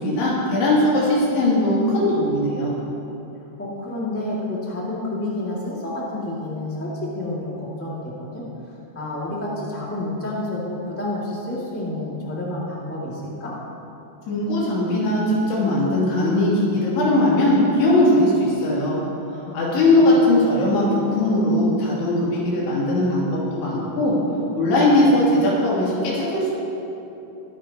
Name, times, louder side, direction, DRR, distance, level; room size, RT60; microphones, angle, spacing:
voice 1, 0.0-2.7 14.3-19.0 19.5-24.2 24.5-26.5, left 1 dB, 75° left, -7 dB, 4.9 m, -19 dB
voice 2, 3.6-8.4 8.9-13.5 19.4-20.2, left 1 dB, 10° left, -6 dB, 0.9 m, -29 dB
22.0 x 10.0 x 3.0 m, 2.9 s
omnidirectional pair, 4.7 m